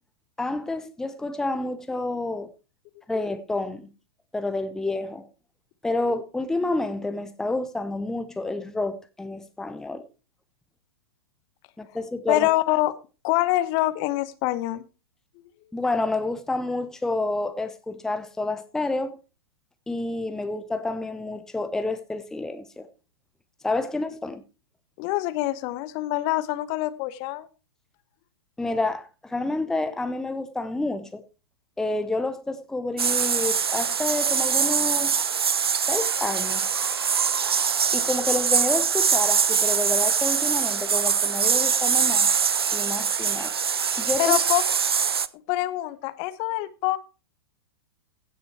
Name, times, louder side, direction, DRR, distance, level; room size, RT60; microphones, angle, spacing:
voice 1, 0.4-2.5 3.1-3.9 4.3-5.3 5.8-10.0 11.8-12.5 15.7-19.2 19.9-22.9 23.6-24.4 28.6-31.2 31.8-35.2 35.9-36.6 37.9-42.3 42.7-43.6 44.0-44.4, left 2 dB, 5° left, 0.7 m, -29 dB
voice 2, 12.3-12.9 13.2-14.8 25.0-27.5 44.2-44.6 45.5-47.0, left 17 dB, 35° left, 0.9 m, -25 dB
sound 1, 33.0-45.3, right 7 dB, 70° right, 0.6 m, -23 dB
16.0 x 6.6 x 4.5 m
figure-of-eight pair, 105°, 13 cm